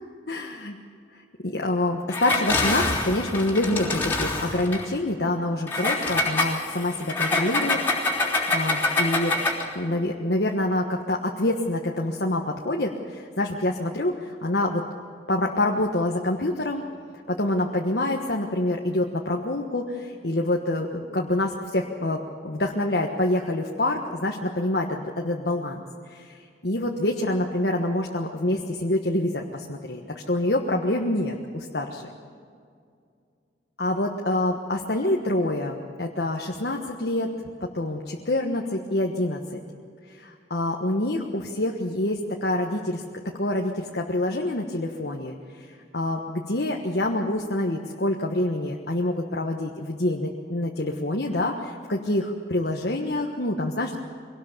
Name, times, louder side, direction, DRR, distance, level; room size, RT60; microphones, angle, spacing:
voice 1, 0.3-0.8 1.1-7.8 8.1-9.4 9.7-14.8 15.3-16.8 17.3-26.4 26.6-30.0 30.3-32.1 33.8-37.3 37.7-39.6 40.1-43.0 43.4-54.0, left 1 dB, 60° left, 0 dB, 1.3 m, -26 dB
Engine, 2.1-4.9 5.7-9.7, left 2 dB, 10° left, 3.5 m, -25 dB
23.5 x 18.5 x 6.9 m, 2.3 s
head